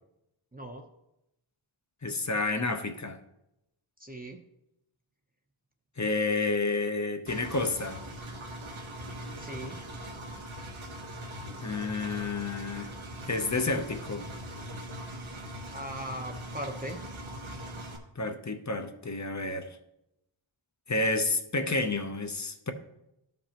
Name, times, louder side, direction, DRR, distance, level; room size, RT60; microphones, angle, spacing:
voice 1, 0.5-0.8 4.0-4.4 9.4-9.8 15.7-17.0, right 1 dB, 20° right, 0.7 m, -39 dB
voice 2, 2.0-3.2 6.0-8.0 11.6-12.9 13.3-14.3 18.2-19.7 20.9-22.7, left 3 dB, 35° left, 0.7 m, -30 dB
Engine, 7.3-18.0, right 1 dB, 80° right, 1.0 m, -41 dB
12.5 x 5.3 x 2.9 m
wide cardioid pair, 45°, 48 cm